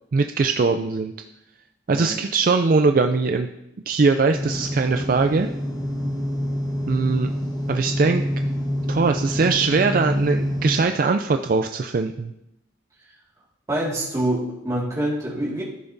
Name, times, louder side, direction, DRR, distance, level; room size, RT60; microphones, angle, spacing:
voice 1, 0.1-1.1 1.9-3.5 3.9-5.5 6.9-7.3 7.7-8.2 8.9-12.3, right 4 dB, 45° right, 6 dB, 0.3 m, -21 dB
sound 1, 4.3-10.8, equal, 20° left, 1.1 m, -27 dB
voice 2, 13.7-15.6, right 1 dB, 15° right, -5 dB, 1.9 m, -25 dB
14.0 x 5.8 x 2.7 m, 0.83 s
head